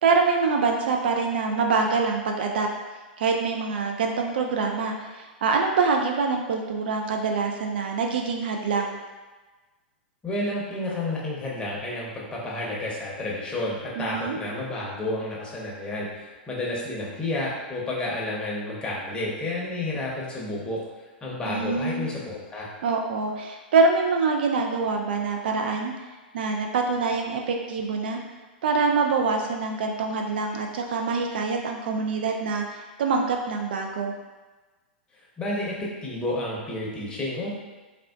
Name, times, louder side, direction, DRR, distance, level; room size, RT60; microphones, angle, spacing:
voice 1, 0.0-2.7 3.2-9.0 14.0-14.4 21.4-22.1 22.8-25.9 26.3-28.2 28.6-34.1, right 4 dB, 65° right, 2 dB, 0.3 m, -25 dB
voice 2, 10.2-20.8 21.2-22.7 35.4-37.5, left 2 dB, 15° left, -4 dB, 0.8 m, -30 dB
3.5 x 2.3 x 2.3 m, 1.2 s
hypercardioid pair, 105°, 6 cm